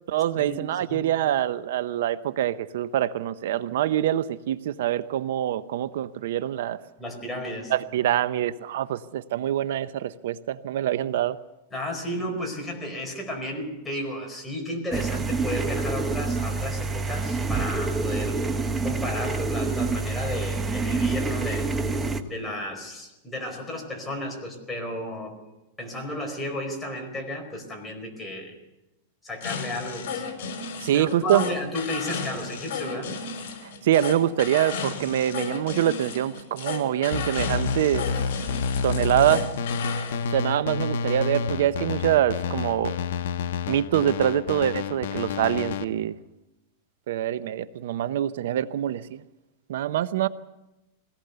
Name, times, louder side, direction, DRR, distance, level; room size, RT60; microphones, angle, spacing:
voice 1, 0.1-6.8 7.7-11.4 30.8-31.5 33.8-38.1 38.8-39.5 40.3-42.9 43.7-46.1 47.1-49.2 49.7-50.3, right 11 dB, 75° right, 14 dB, 0.7 m, -25 dB
voice 2, 7.0-7.7 11.7-18.4 18.8-21.7 22.3-25.4 25.8-28.5 29.2-30.2 30.9-33.1, left 1 dB, 5° left, 1 dB, 4.6 m, -33 dB
sound 1, 14.9-22.2, right 3 dB, 15° right, 1.2 m, -27 dB
sound 2, 29.4-40.2, left 5 dB, 60° left, 5.7 m, -34 dB
sound 3, 37.1-45.8, left 6 dB, 80° left, 1.1 m, -29 dB
22.0 x 18.0 x 6.8 m, 0.97 s
supercardioid pair, 150°, 0 cm